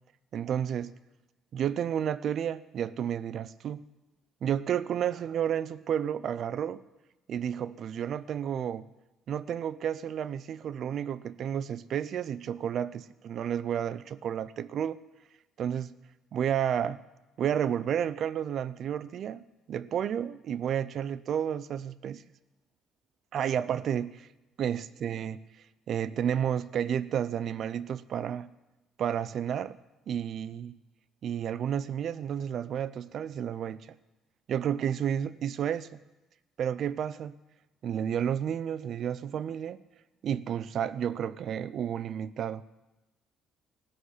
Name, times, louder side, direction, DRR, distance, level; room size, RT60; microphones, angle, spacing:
voice 1, 0.3-0.9 1.5-3.8 4.4-6.8 7.3-8.9 9.3-15.0 15.6-16.0 16.3-17.0 17.4-19.4 19.7-22.2 23.3-24.3 24.6-25.4 25.9-28.5 29.0-29.8 30.1-30.8 31.2-34.0 34.5-36.0 36.6-37.4 37.8-39.8 40.2-42.8, right 9 dB, 45° right, 0.5 m, -31 dB
16.5 x 6.5 x 9.7 m
cardioid pair, 170°, 0 cm